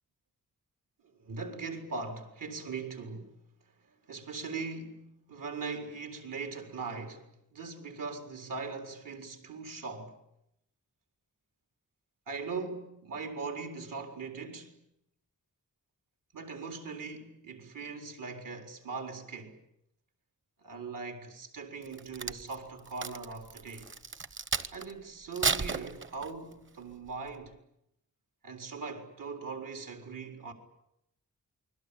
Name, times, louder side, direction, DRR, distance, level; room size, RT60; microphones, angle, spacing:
voice 1, 1.2-3.3 4.1-10.2 12.3-14.8 16.3-19.6 20.6-23.9 24.7-27.6 28.4-30.5, right 4 dB, 80° right, 4.5 m, -40 dB
Crack, 21.8-24.9 25.3-26.5 27.1-27.3, right 5 dB, 40° right, 1.0 m, -34 dB
29.0 x 21.5 x 8.7 m
wide cardioid pair, 160°, 32 cm